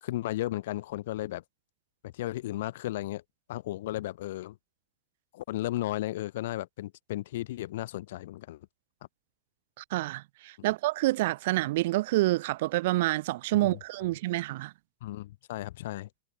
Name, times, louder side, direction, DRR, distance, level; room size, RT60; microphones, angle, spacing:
voice 1, 0.0-1.4 2.0-3.2 3.5-4.6 5.3-8.7 13.5-13.8 15.0-16.1, left 15 dB, 55° left, 1.0 m, -34 dB
voice 2, 9.8-14.7, right 18 dB, 50° right, 0.5 m, -28 dB
figure-of-eight pair, 90°, 0 cm